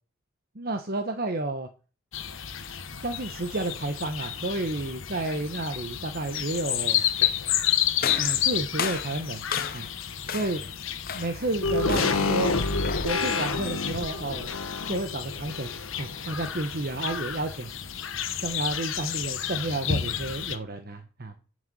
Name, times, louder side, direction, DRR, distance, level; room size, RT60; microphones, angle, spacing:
voice 1, 0.5-1.7 3.0-7.0 8.2-9.4 9.7-9.9 10.3-10.6 11.1-12.6 13.0-14.5 14.9-15.7 16.0-17.8 18.4-21.3, right 2 dB, 45° right, 6 dB, 1.1 m, -31 dB
sound 1, 2.1-20.6, left 10 dB, 65° left, 1.1 m, -31 dB
sound 2, 8.0-10.0 10.3-10.7 11.1-11.5 11.9-12.3 12.8-13.2, left 7 dB, 45° left, 0.7 m, -34 dB
sound 3, 11.6-16.1 16.4-16.5, left 3 dB, 85° left, 1.6 m, -28 dB
9.4 x 6.4 x 7.8 m, 0.37 s
head